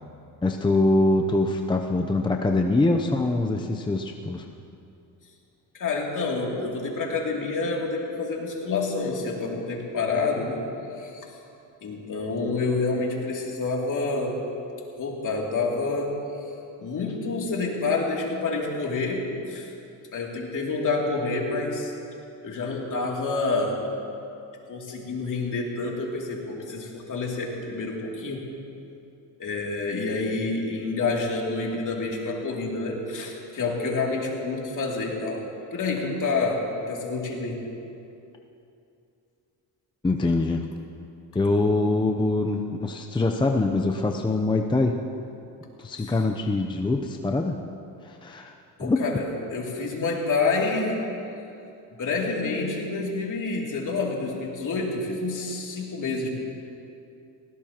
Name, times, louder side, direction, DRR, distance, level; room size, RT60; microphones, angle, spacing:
voice 1, 0.4-4.4 40.0-40.6 41.3-44.9 45.8-47.6 48.0-48.5 48.8-49.0, left 2 dB, 10° left, 3 dB, 0.6 m, -24 dB
voice 2, 5.7-10.6 11.0-11.2 11.8-14.4 14.9-16.2 16.8-19.7 20.1-21.9 22.4-23.8 24.7-28.5 29.4-35.4 35.7-37.6 46.0-46.1 48.8-51.0 52.0-56.3, left 3 dB, 50° left, -1 dB, 2.7 m, -28 dB
19.5 x 17.0 x 2.9 m, 2.7 s
cardioid pair, 100°, 40 cm